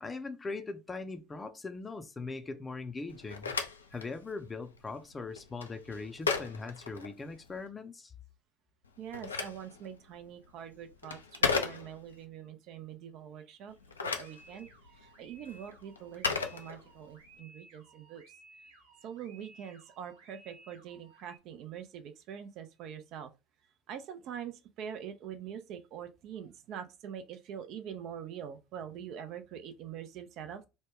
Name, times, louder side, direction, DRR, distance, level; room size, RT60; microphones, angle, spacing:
voice 1, 0.0-3.5 3.9-8.1, left 3 dB, 25° left, 0.5 m, -40 dB
Telephone, 3.1-7.6 8.8-12.3 13.7-17.3, left 5 dB, 90° left, 0.4 m, -36 dB
voice 2, 9.0-13.8 14.0-18.3 18.6-23.3 23.9-30.7, right 8 dB, 55° right, 0.4 m, -44 dB
sound 1, 14.2-21.4, right 2 dB, 75° right, 1.0 m, -58 dB
3.1 x 2.1 x 3.4 m
hypercardioid pair, 65°, 0 cm